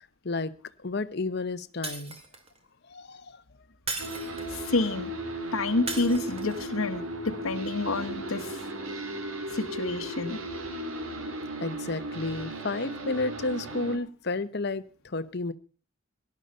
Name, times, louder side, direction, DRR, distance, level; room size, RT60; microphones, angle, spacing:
voice 1, 0.8-2.2 2.9-3.4 11.6-15.5, left 3 dB, 50° left, 14 dB, 0.9 m, -31 dB
Shatter, 1.8-2.6 3.9-4.7 5.9-6.7, right 3 dB, 30° right, 2.4 m, -37 dB
sound 1, 4.0-14.0, right 1 dB, 75° right, 2.4 m, -36 dB
voice 2, 4.5-5.1 5.5-8.6 9.5-10.4, left 2 dB, 85° left, 7 dB, 1.2 m, -29 dB
17.5 x 11.5 x 5.4 m, 0.39 s
head